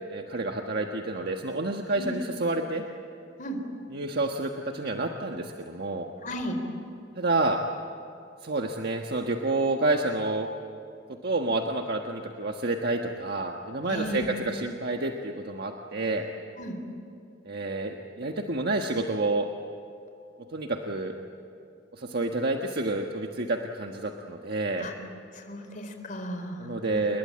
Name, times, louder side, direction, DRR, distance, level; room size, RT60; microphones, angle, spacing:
voice 1, 0.1-2.8 3.9-6.1 7.1-7.6 8.4-10.5 11.2-16.2 17.4-19.5 20.5-21.1 21.9-24.9 26.6-27.2, right 2 dB, 55° right, 3 dB, 1.5 m, -29 dB
voice 2, 6.2-6.6 13.9-14.3 16.6-16.7 24.8-24.9 25.3-27.0, equal, 45° left, 5 dB, 4.1 m, -35 dB
29.0 x 22.0 x 8.7 m, 2.6 s
head